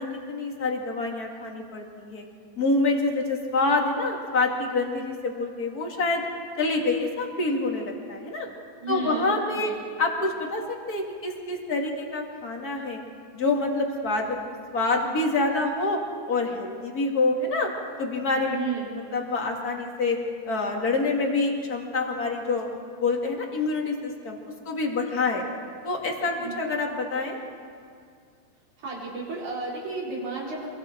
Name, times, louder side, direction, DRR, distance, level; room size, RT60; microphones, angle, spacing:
voice 1, 0.0-2.2 2.6-6.3 6.6-8.5 8.9-9.7 10.0-10.6 10.9-13.0 13.3-14.4 14.7-16.0 16.3-17.7 18.0-18.6 19.1-20.2 20.4-22.7 23.0-24.4 24.7-25.4 25.8-27.4, left 3 dB, 35° left, 1 dB, 2.4 m, -26 dB
voice 2, 8.8-9.8 18.5-18.9 26.3-26.6 28.8-30.7, right 3 dB, 80° right, -5 dB, 5.8 m, -33 dB
26.5 x 22.5 x 4.5 m, 2.2 s
omnidirectional pair, 3.4 m